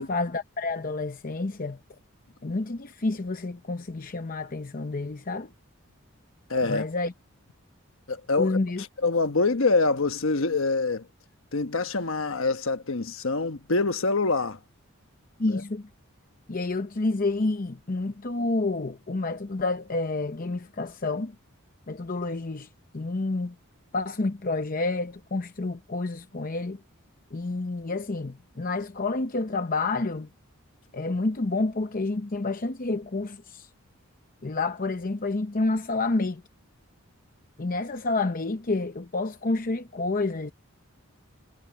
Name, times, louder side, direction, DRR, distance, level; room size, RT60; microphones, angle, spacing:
voice 1, 0.0-1.8 2.4-5.5 6.7-7.1 8.4-8.8 15.4-15.9 16.5-21.3 21.9-22.7 22.9-23.6 23.9-26.8 27.3-30.3 30.9-33.7 34.4-36.4 37.6-40.5, left 3 dB, 40° left, 0.7 m, -29 dB
voice 2, 6.5-6.9 8.1-8.6 9.0-11.1 11.5-14.6 15.4-15.6, left 3 dB, 65° left, 1.2 m, -25 dB
head